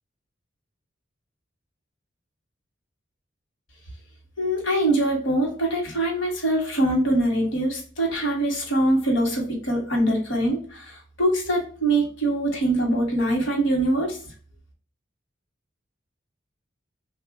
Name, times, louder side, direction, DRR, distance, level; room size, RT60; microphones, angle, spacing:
voice 1, 4.4-14.2, right 1 dB, 75° left, -1 dB, 1.2 m, -23 dB
3.2 x 2.3 x 3.8 m, 0.43 s
head